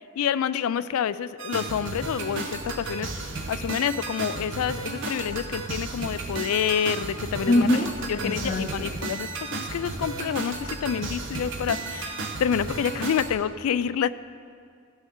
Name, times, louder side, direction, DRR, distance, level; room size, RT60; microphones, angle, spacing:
voice 1, 0.2-2.5 2.8-3.1 3.5-7.7 8.2-14.1, left 8 dB, 85° left, 15 dB, 0.3 m, -28 dB
sound 1, 1.4-13.3, right 3 dB, 60° right, 0.9 m, -33 dB
voice 2, 7.5-9.0, left 1 dB, 35° left, 1 dB, 0.6 m, -24 dB
16.5 x 6.2 x 3.7 m, 2.2 s
head